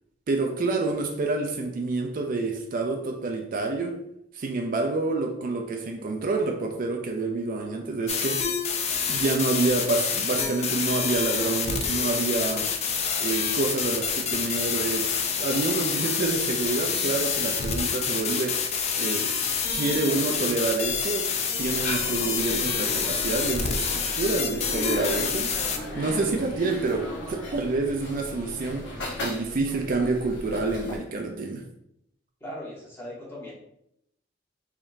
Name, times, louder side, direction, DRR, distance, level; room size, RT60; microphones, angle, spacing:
voice 1, 0.3-4.0 4.3-8.4 9.1-12.7 13.2-15.1 15.4-18.6 18.9-19.3 19.7-21.3 21.6-25.5 26.0-28.9 29.2-31.6, right 3 dB, 50° right, 0.4 m, -28 dB
sound 1, 8.1-25.8, left 6 dB, 35° left, 0.4 m, -27 dB
sound 2, 21.5-31.0, left 1 dB, 90° left, 1.2 m, -36 dB
voice 2, 32.4-33.5, equal, 15° left, 1.2 m, -38 dB
3.6 x 3.5 x 2.6 m
head